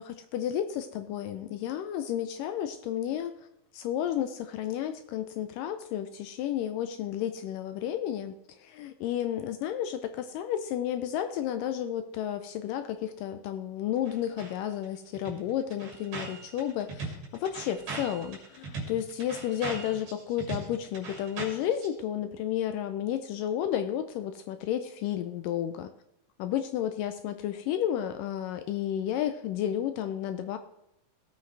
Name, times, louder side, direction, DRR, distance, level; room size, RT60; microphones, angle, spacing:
voice 1, 0.0-3.3 3.7-8.3 8.6-25.9 26.4-30.6, left 10 dB, 80° left, 9 dB, 2.0 m, -32 dB
sound 1, 14.1-14.5 14.8-14.9 15.1-21.9, right 3 dB, 60° right, 3.9 m, -39 dB
16.5 x 8.2 x 3.3 m, 0.82 s
omnidirectional pair, 4.2 m